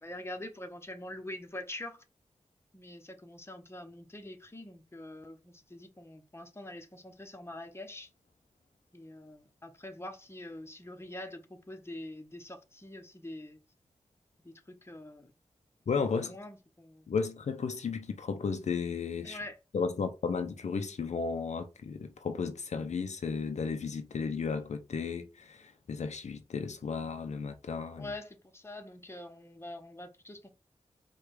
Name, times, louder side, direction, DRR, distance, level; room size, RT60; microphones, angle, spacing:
voice 1, 0.0-2.0 2.7-8.1 8.9-13.6 14.4-15.3 16.1-17.1 19.2-19.6 28.0-30.5, left 1 dB, 20° left, 0.9 m, -45 dB
voice 2, 15.9-16.4 17.1-19.4 19.7-28.1, left 5 dB, 75° left, 0.5 m, -34 dB
4.8 x 2.3 x 4.7 m
wide cardioid pair, 65°, 12 cm